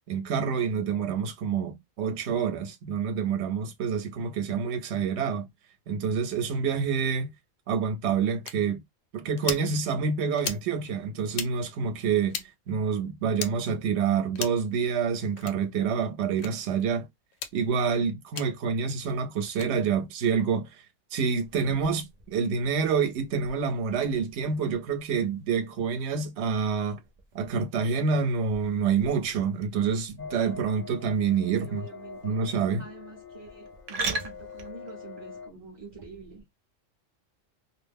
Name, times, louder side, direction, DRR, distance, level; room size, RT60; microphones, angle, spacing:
voice 1, 0.1-5.5 5.9-7.3 7.7-8.8 9.1-12.4 12.7-17.1 17.5-20.8 21.1-27.0 27.3-31.8 32.2-32.8, right 6 dB, 65° right, 0.9 m, -27 dB
sound 1, 8.4-8.6 9.4-9.7 10.4-10.6 11.3-11.5 12.3-12.5 13.3-13.5 14.3-14.6 15.4-15.6 16.4-16.5 17.3-17.5 18.3-18.5 19.5-19.7, left 7 dB, 85° left, 1.0 m, -34 dB
sound 2, 21.3-36.4, right 3 dB, 85° right, 0.3 m, -43 dB
sound 3, 30.2-35.5, left 6 dB, 55° left, 0.6 m, -44 dB
voice 2, 31.5-32.4 32.8-36.4, right 4 dB, 35° right, 0.7 m, -46 dB
2.4 x 2.0 x 3.3 m
omnidirectional pair, 1.3 m